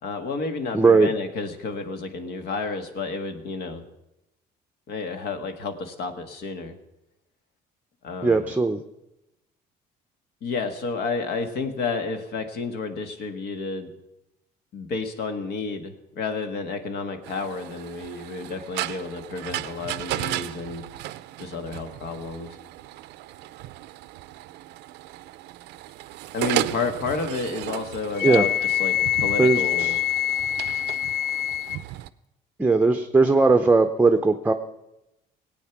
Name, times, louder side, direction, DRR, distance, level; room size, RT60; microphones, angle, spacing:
voice 1, 0.0-3.8 4.9-6.7 8.0-8.4 10.4-13.9 14.7-20.8 21.4-22.5 26.3-28.5 28.8-29.9, left 4 dB, 70° left, 7 dB, 1.6 m, -31 dB
voice 2, 0.7-1.1 8.2-8.8 28.2-28.5 29.4-30.0 32.6-34.5, right 3 dB, 10° right, 6 dB, 0.6 m, -19 dB
sound 1, 17.2-32.1, right 15 dB, 85° right, 0.5 m, -35 dB
Wind instrument woodwind instrument, 28.2-31.8, left 12 dB, 90° left, 0.5 m, -25 dB
19.0 x 8.7 x 5.9 m, 0.92 s
cardioid pair, 110°, 17 cm